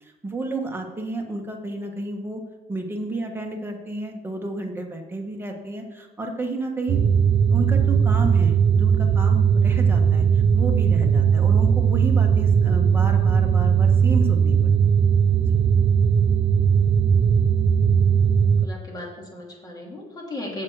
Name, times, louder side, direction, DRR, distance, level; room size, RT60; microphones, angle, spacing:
voice 1, 0.0-2.4 2.7-7.0 7.5-14.6 15.5-15.6, right 2 dB, 15° right, 2 dB, 1.5 m, -31 dB
sound 1, 6.9-18.7, right 7 dB, 45° right, 0.5 m, -18 dB
voice 2, 18.4-20.6, left 1 dB, 25° left, -1 dB, 2.8 m, -36 dB
7.6 x 7.4 x 4.8 m, 1.2 s
cardioid pair, 110°, 17 cm